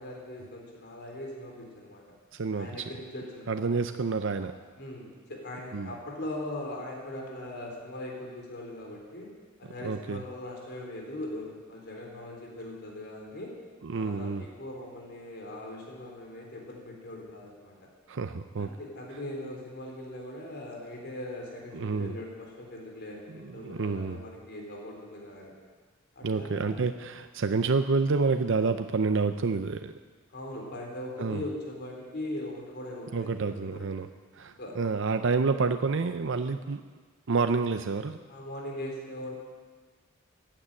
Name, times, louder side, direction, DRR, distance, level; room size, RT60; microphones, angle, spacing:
voice 1, 0.0-2.1 2.5-3.7 4.8-9.3 9.6-13.5 13.9-17.7 18.6-25.5 26.2-26.8 30.3-33.8 34.6-34.8 38.3-39.4, left 1 dB, 55° left, -1 dB, 3.9 m, -40 dB
voice 2, 2.3-2.9 3.5-4.5 5.7-5.9 9.8-10.2 13.8-14.5 18.1-18.7 21.7-22.2 23.3-24.2 26.2-29.9 31.2-31.4 33.1-34.1 34.3-36.8 37.3-38.2, right 4 dB, 65° right, 8 dB, 0.6 m, -28 dB
15.0 x 10.0 x 8.9 m, 1.5 s
head